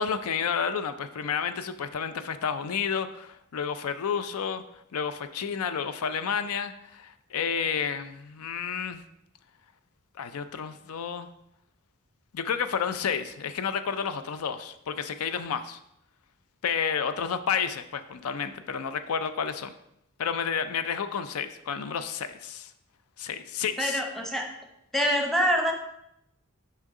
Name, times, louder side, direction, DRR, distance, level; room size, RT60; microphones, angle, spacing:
voice 1, 0.0-4.6 4.9-9.0 10.2-11.3 12.3-15.8 16.6-19.7 20.2-22.7 23.2-24.0, left 7 dB, 85° left, 11 dB, 0.4 m, -30 dB
voice 2, 23.8-24.5 24.9-25.7, equal, ahead, 2 dB, 0.9 m, -25 dB
6.3 x 5.6 x 3.7 m, 0.80 s
head